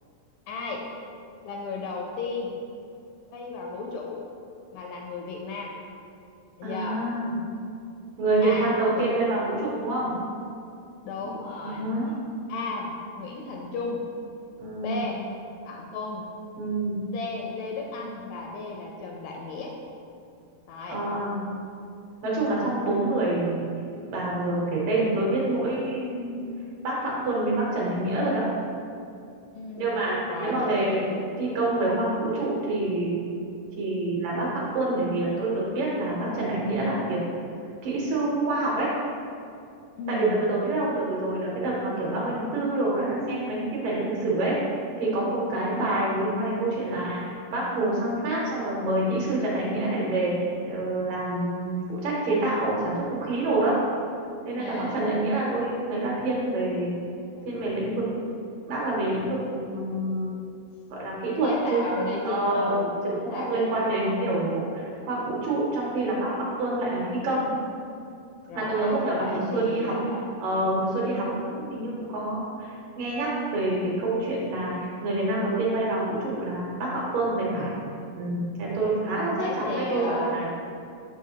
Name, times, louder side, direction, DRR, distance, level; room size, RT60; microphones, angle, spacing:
voice 1, 0.5-0.8 1.4-2.6 3.3-4.2 4.7-5.8 6.6-7.0 8.4-9.1 11.0-11.9 12.5-14.1 14.8-15.2 15.6-16.3 17.1-19.7 20.7-21.0 29.5-30.0 30.3-31.3 40.0-40.5 54.6-55.1 57.3-57.5 58.4-58.6 61.4-62.9 63.2-64.7 68.5-70.3 79.4-80.4, left 3 dB, 80° left, -1 dB, 2.1 m, -34 dB
voice 2, 6.6-7.3 8.2-10.1 11.6-12.1 14.6-15.0 16.6-17.0 20.9-21.4 22.2-23.7 24.1-26.5 26.8-28.4 29.8-33.2 33.8-37.2 37.8-38.9 40.1-44.6 45.0-53.8 54.4-56.9 57.5-58.3 58.7-60.3 60.9-61.8 62.2-66.3 66.6-67.5 68.5-70.0 70.4-72.7 73.0-77.8 78.2-80.5, right 2 dB, 70° right, -5 dB, 2.2 m, -27 dB
6.4 x 6.2 x 2.8 m, 2.6 s
omnidirectional pair, 4.5 m